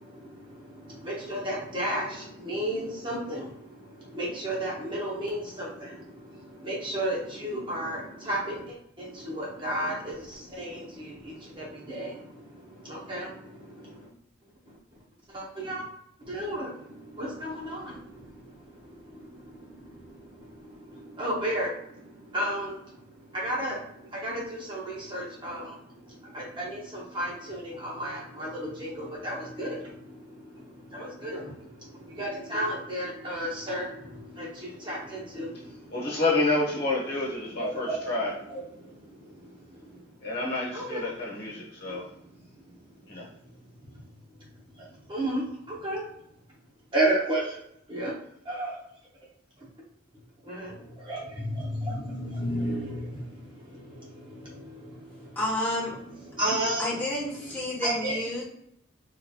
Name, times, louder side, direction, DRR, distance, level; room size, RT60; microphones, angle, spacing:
voice 1, 0.0-14.1 15.3-15.8 16.2-36.2 37.6-38.1 38.5-40.3 40.7-41.1 41.8-46.1 46.9-47.6 47.9-48.1 48.4-48.8 49.6-49.7 50.4-55.4 55.9-57.0 57.3-58.4, right 1 dB, 25° right, -5 dB, 0.8 m, -34 dB
voice 2, 35.9-38.3 40.2-42.0 43.1-43.3, left 2 dB, 50° left, -4 dB, 1.1 m, -28 dB
voice 3, 55.4-56.0 56.8-58.4, left 1 dB, 10° left, -7 dB, 1.1 m, -30 dB
3.8 x 3.0 x 2.3 m, 0.73 s
head